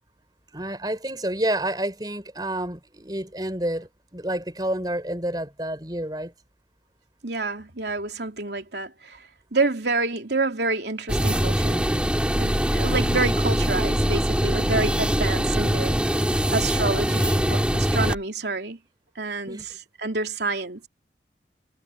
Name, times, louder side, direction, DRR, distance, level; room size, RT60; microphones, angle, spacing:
voice 1, 0.5-6.3 19.5-19.6, right 1 dB, 20° right, 4.6 m, -29 dB
voice 2, 7.2-11.9 12.3-18.8 19.1-19.6 20.0-20.9, right 3 dB, 75° right, 2.9 m, -28 dB
sound 1, 11.1-18.2, equal, 5° right, 3.0 m, -23 dB
head